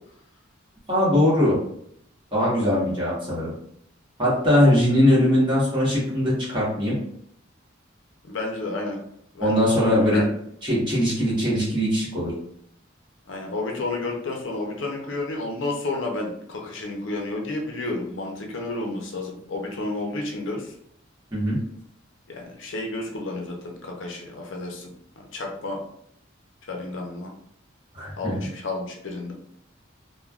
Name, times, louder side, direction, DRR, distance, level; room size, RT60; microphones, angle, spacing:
voice 1, 0.9-1.6 2.3-3.5 4.2-6.9 9.4-10.2 10.6-12.3 21.3-21.6 27.9-28.4, left 1 dB, 25° right, -8 dB, 1.2 m, -21 dB
voice 2, 8.3-9.0 9.3-10.3 13.3-20.7 22.3-24.9 25.2-25.8 26.7-27.3 28.2-29.3, left 2 dB, 70° left, 1 dB, 0.5 m, -31 dB
3.3 x 2.1 x 2.3 m, 0.70 s
head